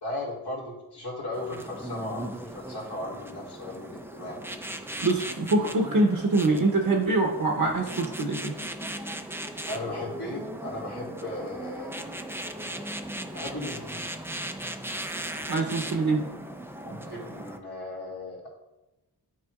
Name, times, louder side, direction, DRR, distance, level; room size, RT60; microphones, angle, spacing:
voice 1, 0.0-4.4 9.7-11.9 13.3-14.1 16.8-18.5, left 1 dB, 65° left, -4 dB, 2.1 m, -36 dB
sound 1, 1.3-17.6, right 1 dB, 5° right, 0.4 m, -38 dB
voice 2, 5.0-8.6 15.5-16.3 16.9-17.0, right 2 dB, 55° right, 1 dB, 0.9 m, -24 dB
9.6 x 4.5 x 2.3 m, 0.96 s
cardioid pair, 45°, 42 cm